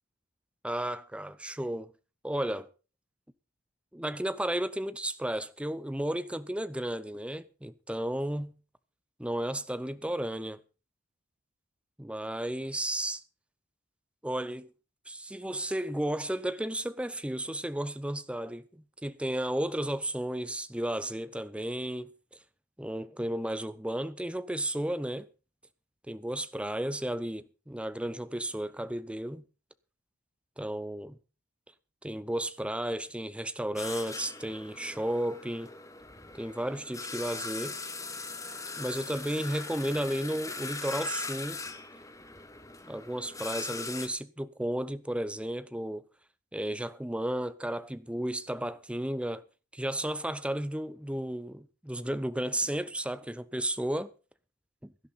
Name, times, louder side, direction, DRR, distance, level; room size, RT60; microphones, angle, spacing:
voice 1, 0.6-1.9 2.2-2.7 3.9-8.5 9.2-10.6 12.0-13.2 14.2-14.7 15.1-22.1 22.8-25.3 26.1-29.4 30.6-31.2 32.0-35.7 36.3-37.8 38.8-41.6 42.9-46.0 46.5-49.4 49.7-54.1 54.8-54.9, right 1 dB, 5° right, 0.7 m, -33 dB
sound 1, 33.8-44.1, left 3 dB, 15° left, 1.6 m, -40 dB
17.0 x 12.0 x 4.1 m
head